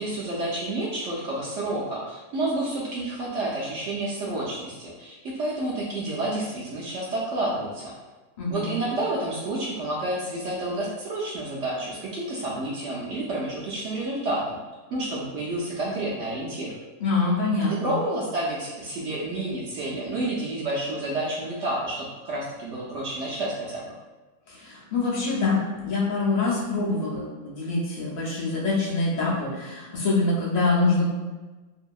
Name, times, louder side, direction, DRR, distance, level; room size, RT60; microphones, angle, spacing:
voice 1, 0.0-7.9 8.5-14.6 14.9-16.8 17.7-23.8, right 1 dB, 65° right, -6 dB, 0.8 m, -29 dB
voice 2, 8.4-8.7 17.0-17.9 24.5-31.1, left 3 dB, 65° left, -6 dB, 0.4 m, -25 dB
2.7 x 2.6 x 2.3 m, 1.2 s
omnidirectional pair, 1.6 m